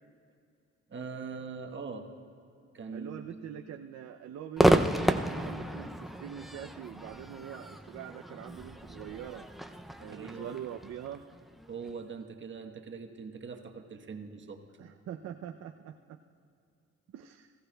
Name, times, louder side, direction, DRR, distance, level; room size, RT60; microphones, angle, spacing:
voice 1, 0.9-2.1 2.7-3.3 10.1-10.6 11.7-14.6, right 5 dB, 40° right, 3 dB, 1.1 m, -42 dB
voice 2, 2.9-9.5 10.0-11.2 14.8-16.2 17.1-17.5, right 10 dB, 60° right, 4 dB, 0.5 m, -44 dB
Crowd / Fireworks, 4.6-11.9, right 1 dB, ahead, 0.4 m, -31 dB
19.5 x 14.5 x 2.3 m, 2.5 s
cardioid pair, 90°, 30 cm